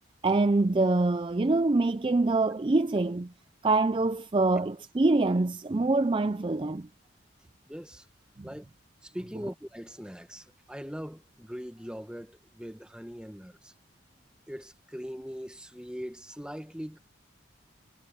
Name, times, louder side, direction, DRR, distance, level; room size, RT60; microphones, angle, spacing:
voice 1, 0.2-3.3 3.6-6.9 8.4-8.5, right 2 dB, 25° right, 0.4 m, -25 dB
voice 2, 7.7-8.1 8.4-8.7 9.0-13.7 14.5-17.0, equal, 5° right, 1.6 m, -41 dB
head